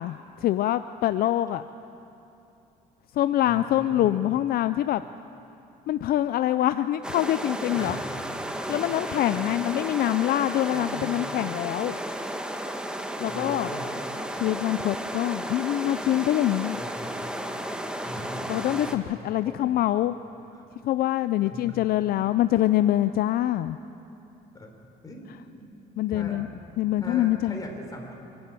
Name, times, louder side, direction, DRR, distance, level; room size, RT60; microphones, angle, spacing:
voice 1, 0.0-1.6 3.1-5.0 5.9-8.0 8.7-11.9 13.2-13.7 14.3-16.8 18.5-20.1 20.8-23.8 26.0-26.5 26.8-27.6, left 13 dB, 60° left, 12 dB, 0.5 m, -25 dB
voice 2, 3.4-4.2 7.7-8.0 8.6-9.6 10.7-11.2 13.3-13.9 16.8-17.3 18.0-18.9 19.5-19.6 20.5-20.6 21.4-22.1 24.5-24.7 25.0-25.7 26.1-26.4 27.0-28.1, left 1 dB, 20° left, 2 dB, 3.8 m, -40 dB
sound 1, 7.0-19.0, right 1 dB, 5° right, 1.3 m, -33 dB
26.5 x 11.5 x 8.9 m, 2.8 s
cardioid pair, 110°, 17 cm